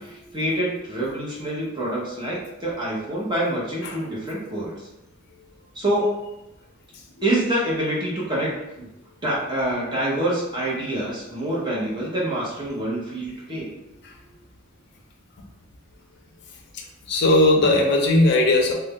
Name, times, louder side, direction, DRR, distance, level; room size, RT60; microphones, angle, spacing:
voice 1, 0.0-4.9 5.7-6.1 7.2-8.5 8.8-8.9 9.2-13.7, right 1 dB, 20° right, -6 dB, 0.8 m, -26 dB
voice 2, 17.1-18.7, left 2 dB, 50° left, 1 dB, 0.5 m, -18 dB
2.4 x 2.1 x 3.5 m, 0.93 s
head